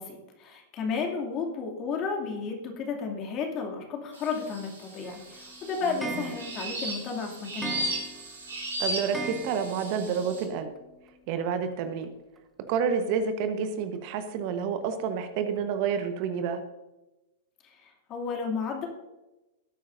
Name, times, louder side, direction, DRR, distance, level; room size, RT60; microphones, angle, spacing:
voice 1, 0.0-7.9 17.6-18.9, left 5 dB, 35° left, 1 dB, 2.6 m, -33 dB
sound 1, 4.1-10.4, right 1 dB, 85° right, 3.8 m, -36 dB
Clock, 5.0-10.1 10.4-10.5 10.8-10.9 11.1-11.2 12.4-12.5 13.0-13.1 13.6-13.7 14.3-14.4 14.9-15.0 15.6-15.7, right 2 dB, 5° right, 1.3 m, -40 dB
voice 2, 8.8-10.7 11.3-12.1 12.7-16.6, right 6 dB, 50° right, 8 dB, 1.2 m, -29 dB
18.0 x 8.9 x 2.6 m, 1.0 s
hypercardioid pair, 100°, 0 cm